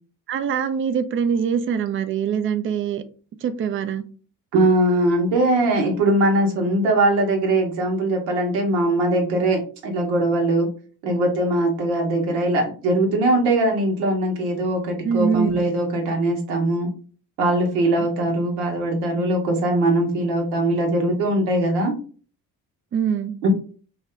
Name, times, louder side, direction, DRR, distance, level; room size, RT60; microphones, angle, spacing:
voice 1, 0.3-3.0 3.4-4.0 15.0-15.6 18.0-18.1 22.9-23.3, right 7 dB, 30° right, 11 dB, 0.3 m, -23 dB
voice 2, 4.5-10.7 11.0-16.9 17.4-21.9 23.4-23.5, right 1 dB, 75° right, 2 dB, 0.9 m, -21 dB
2.7 x 2.3 x 3.2 m, 0.40 s
hypercardioid pair, 45°, 48 cm